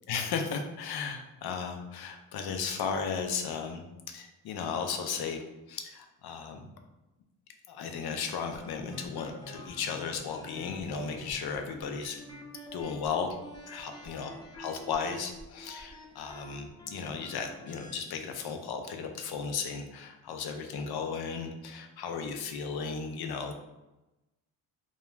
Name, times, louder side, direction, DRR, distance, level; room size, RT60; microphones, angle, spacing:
voice 1, 0.1-5.4 5.7-6.7 7.7-12.2 12.7-13.4 13.7-23.5, left 6 dB, 65° left, 5 dB, 0.5 m, -35 dB
sound 1, 8.5-17.9, equal, 10° left, 0.4 m, -48 dB
2.3 x 2.3 x 3.0 m, 0.99 s
cardioid pair, 100°, 42 cm